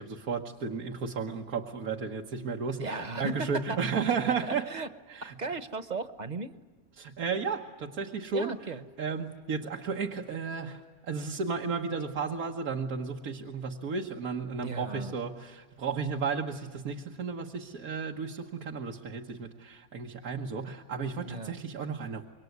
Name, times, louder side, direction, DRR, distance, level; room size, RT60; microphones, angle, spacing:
voice 1, 0.0-4.7 5.1-5.3 7.0-8.5 9.0-22.2, right 5 dB, 90° right, 1 dB, 1.8 m, -33 dB
voice 2, 2.8-3.9 4.4-4.9 5.2-6.5 8.3-8.8 14.6-15.1 21.2-21.6, right 3 dB, 35° right, 12 dB, 1.0 m, -36 dB
26.5 x 23.0 x 9.5 m, 1.4 s
omnidirectional pair, 1.5 m